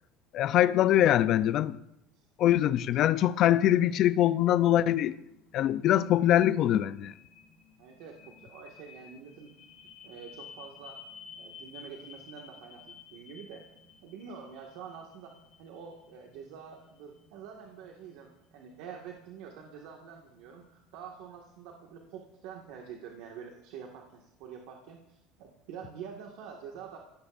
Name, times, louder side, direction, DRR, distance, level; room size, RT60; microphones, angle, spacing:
voice 1, 0.3-1.8 2.4-5.2 5.5-7.1, left 12 dB, 45° left, 0.5 m, -23 dB
sound 1, 4.2-21.6, left 6 dB, 80° left, 4.6 m, -54 dB
voice 2, 7.8-9.5 10.0-11.0 11.3-13.6 14.0-27.0, right 7 dB, 75° right, 1.9 m, -46 dB
25.5 x 17.0 x 2.6 m
cardioid pair, 160°, 0 cm